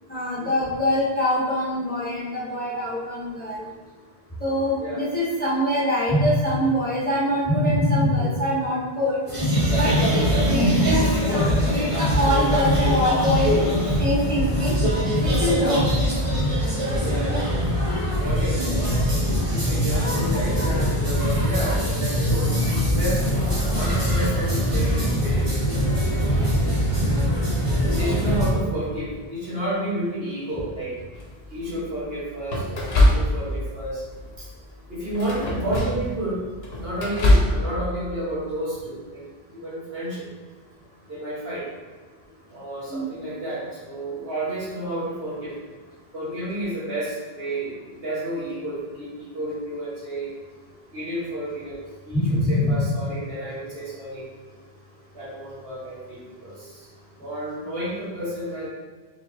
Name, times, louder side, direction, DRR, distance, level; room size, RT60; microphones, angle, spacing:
voice 1, 0.1-3.7 4.4-9.2 9.7-13.7 14.0-14.7 15.2-15.8 18.6-18.9 42.9-43.1 52.1-52.7, left 1 dB, 10° left, -8 dB, 0.9 m, -24 dB
voice 2, 4.8-5.1 17.0-17.5 18.1-18.8 19.5-25.4 25.8-27.3 27.9-31.0 31.5-34.0 34.4-34.5 34.9-36.4 36.8-40.3 41.1-41.7 42.5-45.6 46.1-50.3 50.9-51.8 52.0-54.3 55.1-56.9 57.2-58.7, right 1 dB, 70° right, -7 dB, 1.6 m, -31 dB
sound 1, 9.3-28.5, equal, 35° right, 1.1 m, -22 dB
sound 2, 31.1-31.6 32.5-33.7 34.1-34.4 35.1-36.1 36.5-37.6, left 1 dB, 80° left, 1.1 m, -21 dB
4.5 x 3.5 x 2.8 m, 1.4 s
omnidirectional pair, 1.0 m